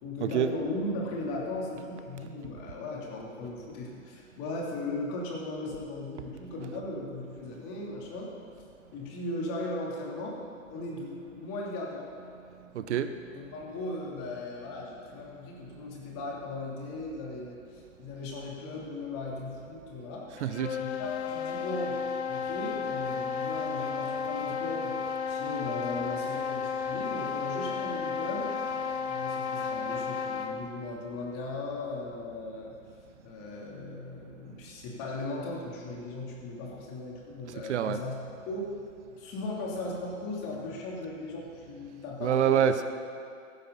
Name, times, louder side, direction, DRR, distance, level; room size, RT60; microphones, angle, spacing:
voice 1, 0.0-8.3 8.9-10.4 10.7-12.1 13.3-20.2 20.8-22.0 22.3-28.5 29.1-32.7 33.2-38.2 38.4-38.8 39.2-42.7, left 2 dB, 35° left, -3 dB, 3.1 m, -37 dB
voice 2, 12.7-13.1 20.4-20.8 37.7-38.0 42.2-42.8, right 9 dB, 60° right, 10 dB, 0.8 m, -26 dB
sound 1, 20.4-30.7, left 6 dB, 50° left, 1.4 m, -33 dB
16.0 x 11.5 x 4.0 m, 2.3 s
hypercardioid pair, 130°, 41 cm